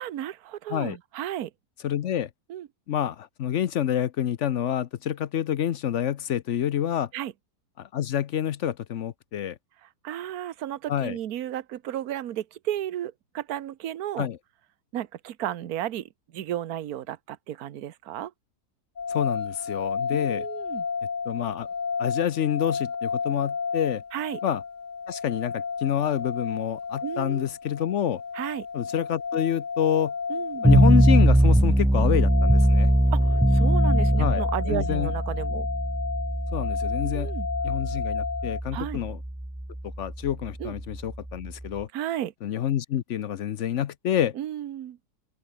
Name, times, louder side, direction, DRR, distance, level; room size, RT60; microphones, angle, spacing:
voice 1, 0.0-1.5 2.5-2.7 7.1-7.3 9.8-14.3 14.9-18.3 20.1-20.9 24.1-24.4 27.0-27.4 28.3-28.7 30.3-30.6 33.1-35.7 37.1-37.5 38.7-39.0 40.6-40.7 41.9-42.3 44.3-45.0, right 11 dB, 65° right, 1.4 m, -33 dB
voice 2, 1.8-2.3 2.9-7.1 7.8-9.6 10.9-11.2 14.2-14.4 19.1-20.4 21.3-21.7 22.0-24.0 24.4-24.6 25.1-28.2 28.7-30.1 30.6-32.9 34.2-35.1 36.5-37.3 37.6-39.2 40.0-41.9 42.4-44.3, left 10 dB, 60° left, 0.9 m, -27 dB
sound 1, 19.0-38.6, left 5 dB, 35° left, 1.0 m, -32 dB
sound 2, 30.6-41.8, right 1 dB, 10° right, 0.3 m, -22 dB
open air
omnidirectional pair, 1.7 m